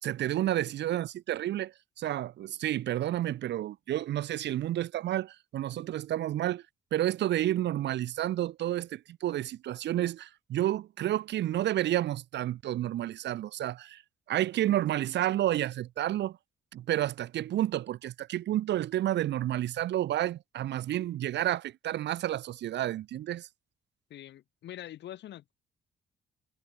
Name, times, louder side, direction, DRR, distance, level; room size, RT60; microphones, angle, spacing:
voice 1, 0.0-6.6 6.9-14.0 14.3-16.4 16.7-23.5, right 13 dB, 75° right, 1.1 m, -30 dB
voice 2, 24.1-25.5, left 12 dB, 75° left, 1.9 m, -44 dB
cardioid pair, 110°, 18 cm